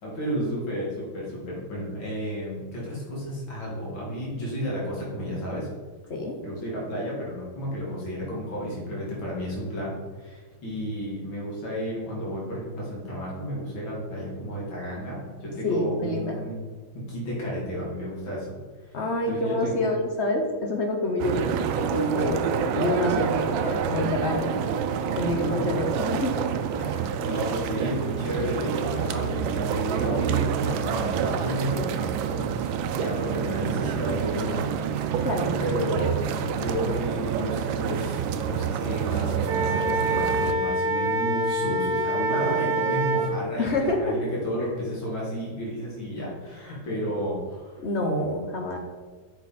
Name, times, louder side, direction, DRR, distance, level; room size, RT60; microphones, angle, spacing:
voice 1, 0.0-5.7 6.4-16.5 16.9-18.6 19.3-19.9 23.1-23.3 25.2-25.6 26.7-34.6 35.6-47.8, equal, 85° left, -5 dB, 2.8 m, -32 dB
voice 2, 15.6-16.4 18.9-22.4 22.7-24.6 25.1-26.4 27.3-27.4 35.2-35.6 42.3-42.8 43.6-44.2 47.8-48.8, left 2 dB, 50° left, 2 dB, 0.9 m, -27 dB
sound 1, 21.2-40.5, right 8 dB, 90° right, 1.3 m, -28 dB
Wind instrument woodwind instrument, 39.4-43.3, right 2 dB, 60° right, 0.9 m, -26 dB
8.1 x 5.2 x 4.1 m, 1.5 s
omnidirectional pair, 2.1 m